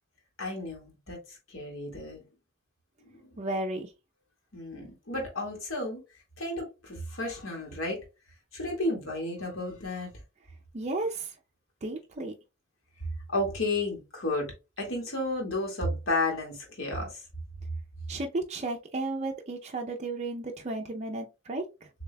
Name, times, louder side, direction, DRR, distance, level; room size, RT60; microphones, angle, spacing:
voice 1, 0.4-2.2 3.1-3.2 4.5-6.0 6.4-8.0 8.5-10.1 13.3-14.5 14.8-17.2, left 2 dB, 70° left, 1.9 m, -32 dB
voice 2, 3.4-3.9 10.7-11.3 11.8-12.3 18.1-21.9, right 2 dB, 35° right, 0.5 m, -33 dB
6.7 x 2.8 x 2.2 m
head